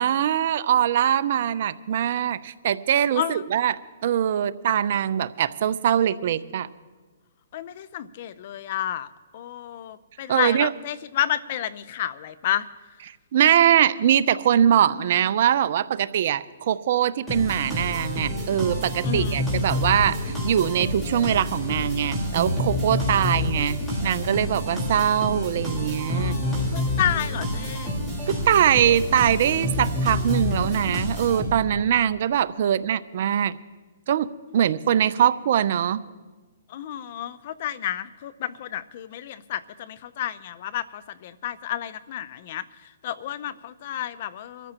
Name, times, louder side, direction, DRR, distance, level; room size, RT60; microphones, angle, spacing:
voice 1, 0.0-6.7 10.3-10.7 13.3-26.4 28.5-33.6 34.1-34.3 34.5-36.0, right 10 dB, 55° right, 14 dB, 0.6 m, -22 dB
voice 2, 3.2-3.5 7.5-9.1 9.3-12.7 19.0-19.4 26.1-27.9 36.7-42.6 43.0-44.7, left 11 dB, 45° left, 16 dB, 0.6 m, -30 dB
sound 1, 17.3-31.8, left 1 dB, ahead, 4.3 m, -28 dB
24.5 x 13.5 x 2.9 m, 1.3 s
hypercardioid pair, 145°, 0 cm